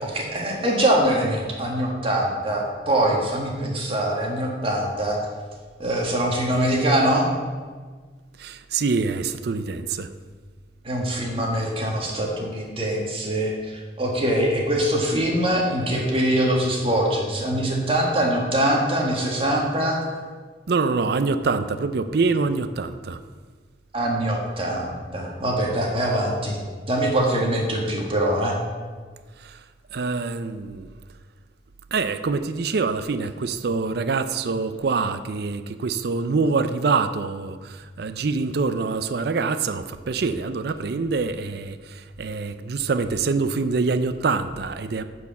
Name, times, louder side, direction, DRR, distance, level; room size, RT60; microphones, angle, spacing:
voice 1, 0.0-5.2 5.8-7.3 10.8-20.0 23.9-26.6 26.9-28.6, right 1 dB, 30° right, -1 dB, 1.7 m, -23 dB
voice 2, 8.4-10.1 20.7-23.2 29.4-29.6 29.9-30.9 31.9-45.0, right 4 dB, 60° right, 11 dB, 0.5 m, -25 dB
9.5 x 4.7 x 7.2 m, 1.5 s
head